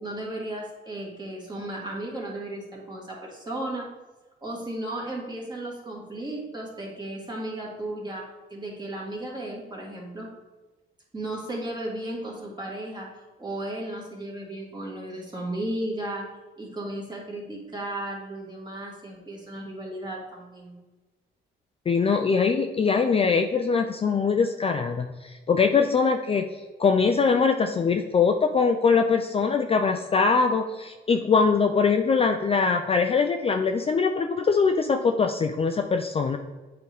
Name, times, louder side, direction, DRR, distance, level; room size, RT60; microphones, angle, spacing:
voice 1, 0.0-3.9 4.4-10.4 11.1-16.3 16.6-20.8, right 1 dB, 20° right, -2 dB, 1.8 m, -35 dB
voice 2, 21.9-26.5 26.8-36.4, left 5 dB, 30° left, 5 dB, 0.4 m, -22 dB
8.3 x 3.8 x 3.5 m, 1.2 s
cardioid pair, 90°, 20 cm